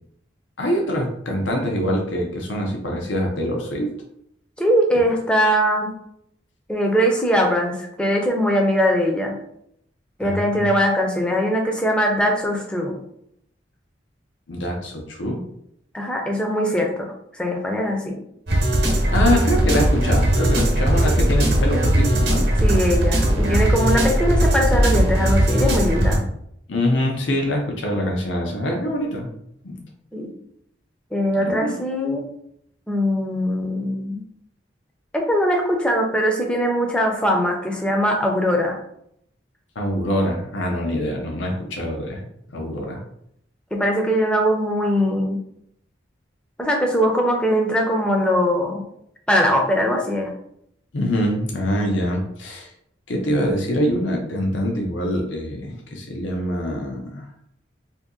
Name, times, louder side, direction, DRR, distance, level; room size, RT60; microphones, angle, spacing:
voice 1, 0.6-3.9 10.2-10.6 14.5-15.4 18.9-22.5 23.9-24.0 26.7-29.3 29.6-29.8 31.4-31.8 39.8-42.2 42.5-43.0 50.9-52.7 53.1-57.2, equal, 85° left, 1 dB, 0.7 m, -24 dB
voice 2, 4.6-5.9 6.7-9.4 10.2-13.0 15.9-17.1 17.3-18.2 22.6-26.2 30.1-30.3 31.1-32.2 32.9-34.2 35.1-38.8 43.7-45.4 46.6-48.8 49.3-50.3, equal, 5° left, 1 dB, 0.5 m, -21 dB
sound 1, 18.5-26.2, right 1 dB, 55° right, 0.9 m, -18 dB
2.7 x 2.7 x 3.7 m, 0.73 s
head